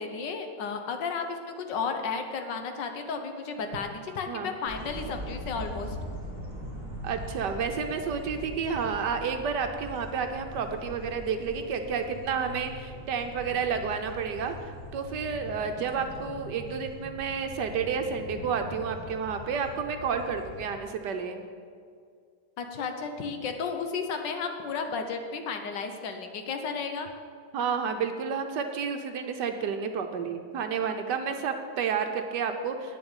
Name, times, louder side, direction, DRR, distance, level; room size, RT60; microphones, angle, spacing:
voice 1, 0.0-6.0 22.6-27.1, left 5 dB, 70° left, 5 dB, 1.6 m, -33 dB
sound 1, 4.7-20.7, equal, 20° left, 2.2 m, -41 dB
voice 2, 7.0-14.5 14.9-21.4 27.5-33.0, right 6 dB, 65° right, 6 dB, 1.3 m, -30 dB
9.1 x 7.0 x 8.9 m, 2.2 s
omnidirectional pair, 2.1 m